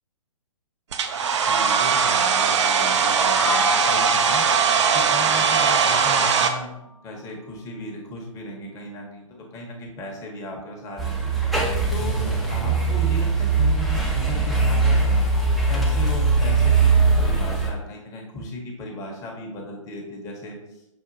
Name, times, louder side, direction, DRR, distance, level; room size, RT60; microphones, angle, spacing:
Domestic sounds home sounds, 0.9-6.5, right 6 dB, 60° right, 0.4 m, -20 dB
voice 1, 1.5-4.4 4.9-6.7 7.0-11.3 11.9-20.6, left 1 dB, 20° left, -1 dB, 0.8 m, -36 dB
sound 1, 3.4-7.3, left 3 dB, 70° left, 0.6 m, -32 dB
sound 2, 11.0-17.7, right 4 dB, ahead, 0.4 m, -21 dB
5.8 x 2.5 x 2.5 m, 0.87 s
figure-of-eight pair, 120°, 17 cm